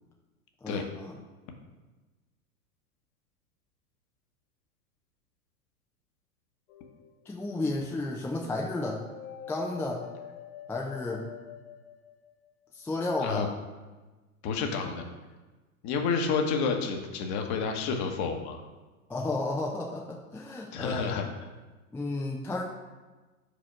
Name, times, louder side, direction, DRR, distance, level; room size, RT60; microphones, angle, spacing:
voice 1, 0.6-1.1 7.3-9.0 9.5-10.0 10.7-11.3 12.7-13.4 19.1-21.1 21.9-22.6, left 2 dB, 5° left, -2 dB, 0.5 m, -32 dB
sound 1, 6.7-7.4 8.9-12.7, left 9 dB, 70° left, 1.1 m, -46 dB
voice 2, 14.4-15.0 15.8-18.6 20.7-21.2, left 5 dB, 40° left, 4 dB, 1.2 m, -29 dB
5.2 x 4.1 x 6.0 m, 1.2 s
hypercardioid pair, 100°, 46 cm